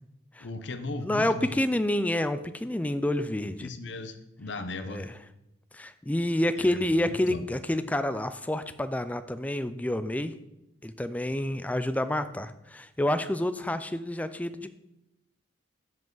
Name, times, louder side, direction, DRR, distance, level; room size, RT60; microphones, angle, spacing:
voice 1, 0.4-1.6 3.6-5.1 7.0-7.4, left 2 dB, 70° left, 9 dB, 0.8 m, -37 dB
voice 2, 0.9-3.7 4.9-5.1 5.7-10.3 10.8-14.7, left 1 dB, 10° left, 11 dB, 0.4 m, -28 dB
7.5 x 7.5 x 3.9 m, 0.89 s
head